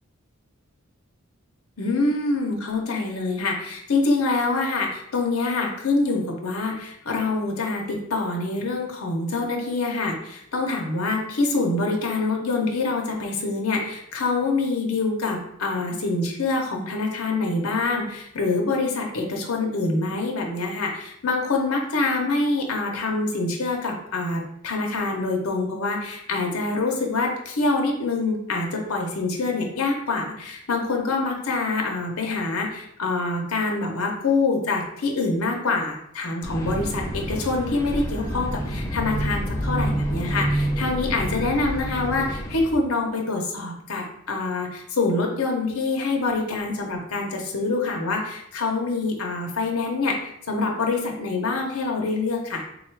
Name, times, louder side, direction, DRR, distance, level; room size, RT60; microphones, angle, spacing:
voice 1, 1.8-52.6, left 3 dB, 85° left, 1 dB, 0.7 m, -25 dB
sound 1, 36.4-42.7, right 1 dB, 15° left, 0.5 m, -28 dB
3.8 x 2.3 x 4.4 m, 0.77 s
head